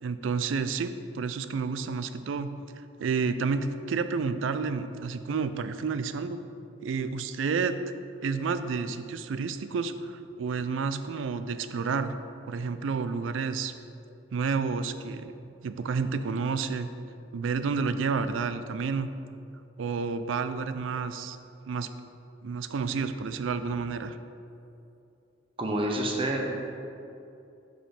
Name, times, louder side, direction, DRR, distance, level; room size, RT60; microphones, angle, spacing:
voice 1, 0.0-2.5 3.0-6.4 6.8-7.8 8.2-12.2 12.5-13.7 14.3-15.3 15.6-16.9 17.3-19.1 19.8-21.4 21.7-21.9 22.4-24.2, right 5 dB, 85° right, 11 dB, 0.4 m, -30 dB
voice 2, 25.6-26.5, right 1 dB, 30° right, 0 dB, 0.7 m, -28 dB
5.1 x 5.1 x 5.8 m, 2.7 s
head